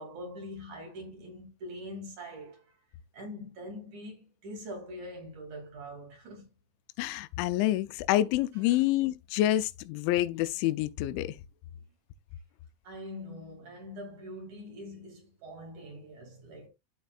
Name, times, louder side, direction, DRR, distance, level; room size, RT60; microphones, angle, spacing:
voice 1, 0.0-2.6 3.1-6.5 8.5-8.8 12.8-16.7, equal, 45° right, 3.3 m, -43 dB
voice 2, 7.0-11.4, left 14 dB, 85° left, 2.9 m, -27 dB
13.5 x 4.6 x 2.4 m
omnidirectional pair, 5.5 m